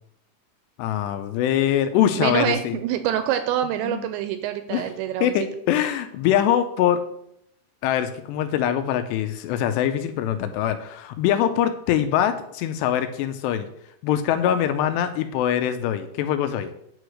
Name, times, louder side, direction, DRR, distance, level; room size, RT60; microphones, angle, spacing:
voice 1, 0.8-2.8 3.9-4.1 4.7-4.8 5.2-7.0 7.8-13.7 14.0-16.7, left 10 dB, 85° left, 9 dB, 2.5 m, -23 dB
voice 2, 2.2-5.3, right 10 dB, 85° right, 9 dB, 2.5 m, -26 dB
9.2 x 4.9 x 6.3 m, 0.73 s
omnidirectional pair, 5.6 m